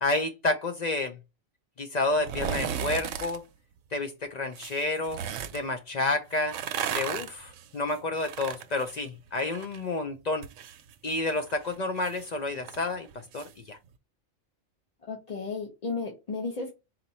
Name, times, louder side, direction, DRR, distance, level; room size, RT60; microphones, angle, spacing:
voice 1, 0.0-1.2 1.8-3.4 3.9-5.2 5.5-6.6 6.9-10.5 11.0-13.1 13.3-13.8, left 2 dB, 55° left, 0.5 m, -30 dB
sound 1, 2.2-3.4 4.5-5.6 6.3-9.8 10.1-13.5 13.9-14.0, right 8 dB, 80° right, 0.9 m, -36 dB
voice 2, 15.1-16.7, left 4 dB, 35° left, 0.9 m, -33 dB
4.2 x 2.6 x 4.1 m
omnidirectional pair, 1.3 m